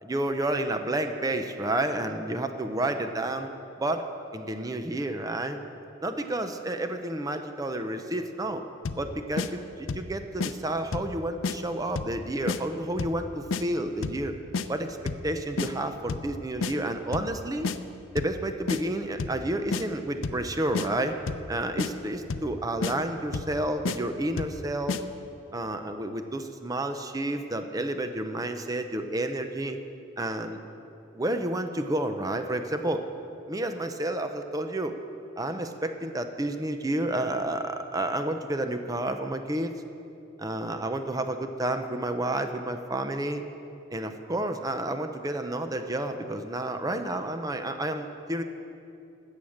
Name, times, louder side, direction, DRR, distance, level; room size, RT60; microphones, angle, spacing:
voice 1, 0.0-3.5 3.8-4.1 4.3-5.6 6.0-8.6 9.0-14.3 14.7-15.0 15.2-17.7 18.1-21.2 21.5-25.0 25.5-29.8 30.2-30.6 31.2-33.0 33.5-34.9 35.4-39.7 40.4-43.4 43.9-48.4, right 1 dB, 20° right, 7 dB, 0.6 m, -30 dB
sound 1, 8.8-9.1 9.4-9.5 9.9-10.1 10.4-10.5 10.9-11.1 11.4-11.6 12.0-12.2 12.5-12.6 13.0-13.2 13.5-13.6 14.0-14.2 14.5-14.7 15.1-15.3 15.6-15.7 16.1-16.3 16.6-16.7 17.1-17.3 17.6-17.8 18.2-18.4 18.7-18.8 19.2-19.4 19.7-19.8 20.2-20.5 20.7-20.9 21.3-21.5 21.8-21.9 22.3-22.5 22.8-22.9 23.3-23.6 23.8-24.0 24.4-24.6 24.9-25.0, left 4 dB, 75° left, 0.6 m, -30 dB
15.5 x 9.0 x 6.5 m, 2.7 s
head